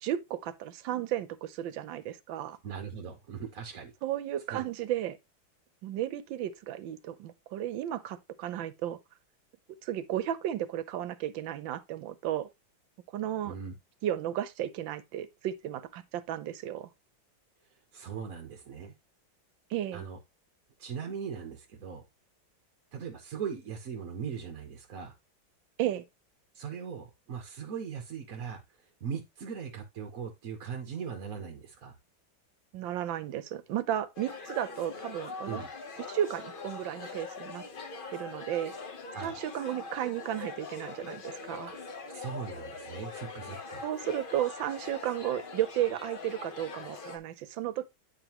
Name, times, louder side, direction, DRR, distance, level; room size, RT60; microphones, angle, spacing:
voice 1, 0.0-2.6 4.0-5.2 5.8-9.0 9.8-12.5 13.1-13.5 14.0-16.9 19.7-20.0 25.8-26.0 32.7-35.6 36.1-37.6 38.1-38.7 39.2-41.7 43.8-47.9, right 12 dB, 75° right, 1.4 m, -34 dB
voice 2, 2.6-3.9 4.5-4.7 13.4-13.7 17.9-18.9 19.9-20.2 20.8-22.0 22.9-25.2 26.5-31.9 35.4-35.7 39.1-39.3 41.7-41.8 42.1-43.8, right 7 dB, 55° right, 1.2 m, -39 dB
sound 1, 34.2-47.2, left 4 dB, 45° left, 0.7 m, -42 dB
9.0 x 4.8 x 2.9 m
omnidirectional pair, 2.1 m